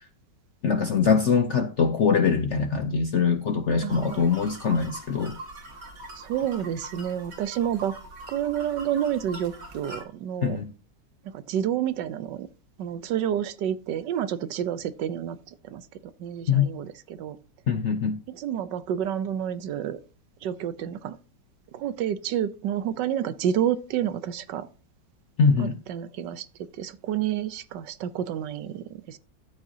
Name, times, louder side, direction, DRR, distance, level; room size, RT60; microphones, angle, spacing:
voice 1, 0.6-5.3 10.4-10.7 16.5-16.7 17.7-18.2 25.4-25.8, left 5 dB, 60° left, 0.7 m, -23 dB
voice 2, 3.8-4.3 6.2-7.9 8.3-10.6 11.3-12.5 12.8-15.9 16.2-17.4 18.3-20.0 20.4-21.2 21.7-24.7 25.6-29.2, right 10 dB, 75° right, 1.3 m, -29 dB
sound 1, 3.9-10.0, right 2 dB, 50° right, 2.4 m, -43 dB
12.5 x 8.8 x 2.8 m
omnidirectional pair, 2.0 m